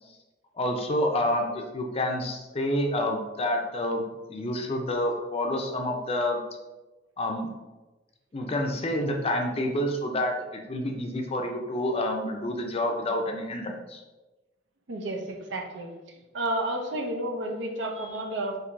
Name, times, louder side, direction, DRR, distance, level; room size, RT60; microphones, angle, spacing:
voice 1, 0.5-6.4 7.2-7.5 8.3-14.0, left 1 dB, 35° left, 3 dB, 0.5 m, -28 dB
voice 2, 14.9-15.9 16.3-18.6, right 1 dB, 85° right, 3 dB, 0.6 m, -31 dB
4.4 x 2.6 x 2.5 m, 1.1 s
head